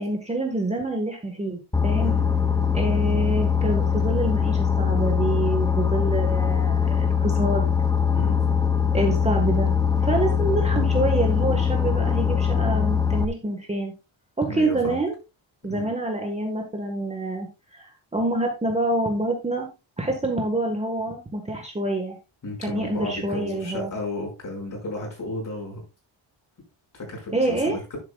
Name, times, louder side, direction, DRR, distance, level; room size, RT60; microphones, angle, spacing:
voice 1, 0.0-2.1 2.7-7.7 8.9-13.9 14.4-15.1 15.6-17.5 17.7-19.7 20.0-22.2 22.6-23.9 27.3-27.8, right 2 dB, 15° right, 1 dB, 1.5 m, -26 dB
Boat Water vehicle, 1.7-13.3, left 7 dB, 10° left, 0.6 m, -22 dB
voice 2, 14.5-15.0 15.7-15.9 22.4-25.8 26.9-28.0, left 2 dB, 40° left, 0 dB, 6.1 m, -33 dB
11.5 x 10.5 x 2.4 m, 0.27 s
wide cardioid pair, 165°, 47 cm